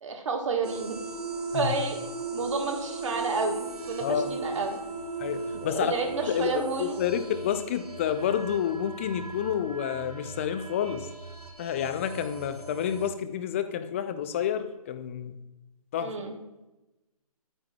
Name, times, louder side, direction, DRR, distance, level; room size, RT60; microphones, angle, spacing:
voice 1, 0.0-1.0 1.5-2.0 2.3-4.8 5.6-7.0 16.0-16.3, right 4 dB, 55° right, 3 dB, 1.4 m, -30 dB
sound 1, 0.6-13.1, right 3 dB, 80° right, 1.3 m, -38 dB
voice 2, 4.0-4.3 5.2-5.9 6.3-11.1 11.6-15.4 15.9-16.1, left 9 dB, 20° left, 10 dB, 0.4 m, -29 dB
9.7 x 9.2 x 2.3 m, 1.0 s
figure-of-eight pair, 135°, 19 cm